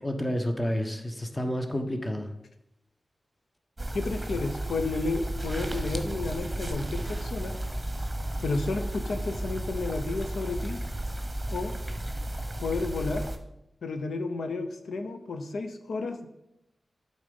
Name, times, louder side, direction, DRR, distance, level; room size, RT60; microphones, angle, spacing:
voice 1, 0.0-2.3, equal, 20° left, 5 dB, 1.0 m, -30 dB
sound 1, 3.8-13.4, right 1 dB, 20° right, 1.0 m, -33 dB
voice 2, 3.9-7.5 8.4-10.8 11.5-11.8 12.6-13.2 13.8-16.3, left 3 dB, 90° left, 7 dB, 0.6 m, -32 dB
8.7 x 3.9 x 5.3 m, 0.86 s
cardioid pair, 65°, 0 cm